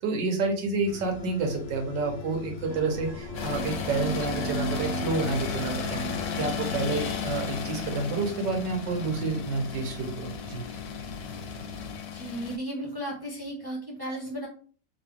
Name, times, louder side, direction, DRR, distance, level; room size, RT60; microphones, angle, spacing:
voice 1, 0.0-6.0 6.4-10.7, right 3 dB, 85° right, 2 dB, 1.6 m, -29 dB
sound 1, 0.9-12.0, left 5 dB, 65° left, 0.8 m, -42 dB
sound 2, 2.7-7.3, right 6 dB, 70° right, 1.5 m, -38 dB
sound 3, 3.3-12.6, left 7 dB, 85° left, 1.3 m, -34 dB
voice 2, 12.1-14.5, right 1 dB, 30° right, -3 dB, 0.4 m, -35 dB
3.3 x 2.9 x 3.5 m, 0.43 s
omnidirectional pair, 1.9 m